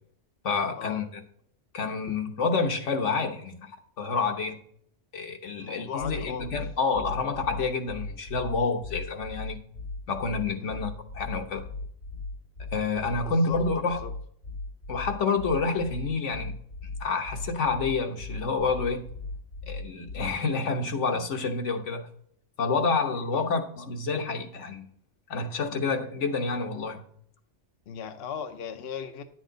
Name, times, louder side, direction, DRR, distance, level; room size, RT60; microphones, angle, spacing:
voice 1, 0.4-1.2 1.7-3.7 4.0-4.6 5.1-9.6 10.1-11.6 12.7-14.0 14.9-16.6 17.0-19.0 19.6-22.1 22.6-24.8 25.3-27.0, left 4 dB, 80° left, 1.4 m, -28 dB
voice 2, 5.6-6.5 10.6-10.8 13.2-14.1 23.3-23.4 27.9-29.2, left 7 dB, 60° left, 0.9 m, -38 dB
sound 1, 6.0-20.5, left 3 dB, 40° left, 1.8 m, -38 dB
10.0 x 7.3 x 3.9 m
omnidirectional pair, 1.2 m